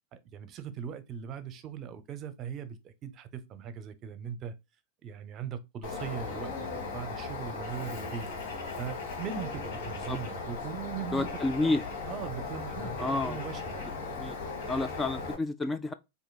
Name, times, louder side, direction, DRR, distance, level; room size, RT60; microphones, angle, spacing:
voice 1, 0.1-4.5 5.0-8.3 8.8-11.3 11.6-11.8 12.1-13.8, right 8 dB, 40° right, 0.6 m, -40 dB
Bird, 5.8-15.3, left 4 dB, 65° left, 1.4 m, -37 dB
voice 2, 11.1-11.8 13.0-13.4 14.1-14.4 14.7-15.9, left 2 dB, 15° left, 0.3 m, -30 dB
4.4 x 2.7 x 2.3 m
hypercardioid pair, 115°, 0 cm